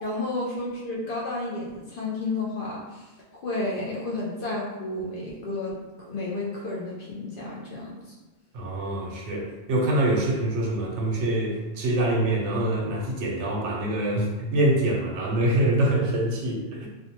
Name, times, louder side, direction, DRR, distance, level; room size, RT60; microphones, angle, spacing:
voice 1, 0.0-8.1, left 2 dB, 60° left, -5 dB, 0.6 m, -32 dB
voice 2, 8.5-16.9, right 1 dB, 75° right, -2 dB, 0.9 m, -25 dB
2.4 x 2.1 x 2.8 m, 1.1 s
omnidirectional pair, 1.2 m